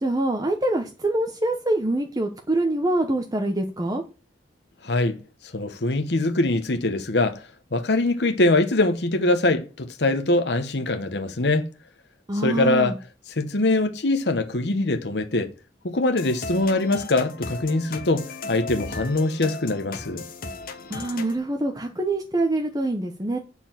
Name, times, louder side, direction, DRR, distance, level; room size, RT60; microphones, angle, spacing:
voice 1, 0.0-4.0 12.3-13.0 20.9-23.4, right 2 dB, 20° right, 0.9 m, -25 dB
voice 2, 4.8-5.2 5.5-11.7 12.4-13.0 13.4-15.5 15.8-20.3, left 2 dB, 70° left, 1.0 m, -23 dB
sound 1, 16.2-21.4, left 3 dB, 55° left, 1.2 m, -36 dB
9.8 x 4.5 x 7.3 m
head